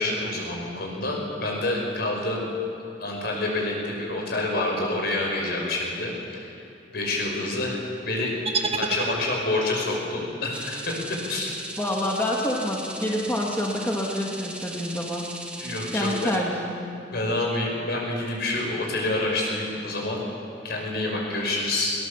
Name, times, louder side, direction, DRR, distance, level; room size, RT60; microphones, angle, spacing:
voice 1, 0.0-2.4 3.0-6.5 6.9-8.3 8.8-11.5 15.6-16.4 17.1-20.2 20.6-21.9, left 2 dB, 60° left, 0 dB, 5.6 m, -27 dB
sound 1, 8.5-9.8, right 4 dB, 35° right, 1.5 m, -29 dB
sound 2, 10.5-16.4, right 1 dB, 5° right, 1.8 m, -38 dB
voice 2, 11.8-15.3 15.9-16.8, left 1 dB, 10° left, -2 dB, 1.9 m, -27 dB
21.5 x 19.0 x 7.1 m, 2.7 s
head